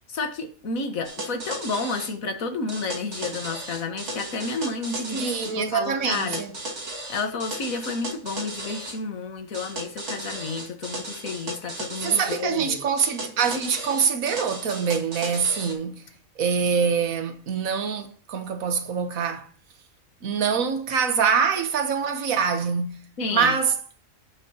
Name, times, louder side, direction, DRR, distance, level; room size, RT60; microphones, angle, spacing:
voice 1, 0.1-6.4 7.1-12.8 23.2-23.5, left 4 dB, 75° left, 1.7 m, -31 dB
sound 1, 1.0-2.1 2.7-5.6 6.1-9.0 9.5-12.4 13.0-15.7, right 1 dB, 55° right, 2.1 m, -35 dB
voice 2, 5.1-6.5 12.0-16.1 16.4-19.5 20.2-23.8, right 6 dB, 75° right, 1.4 m, -25 dB
16.5 x 5.7 x 2.8 m
omnidirectional pair, 1.4 m